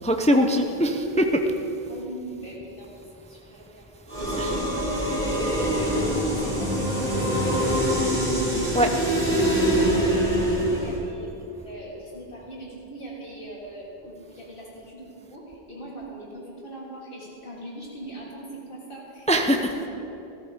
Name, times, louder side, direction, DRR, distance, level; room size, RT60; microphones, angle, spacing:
voice 1, 0.0-1.4 4.4-4.5 8.7-9.0 19.3-19.6, equal, 10° left, 4 dB, 0.7 m, -21 dB
voice 2, 1.9-3.8 4.1-8.3 9.9-11.3 11.6-19.9, right 1 dB, 60° left, -5 dB, 3.6 m, -41 dB
sound 1, 4.1-11.0, equal, 50° right, 3.7 m, -24 dB
16.0 x 14.0 x 5.1 m, 2.9 s
omnidirectional pair, 1.0 m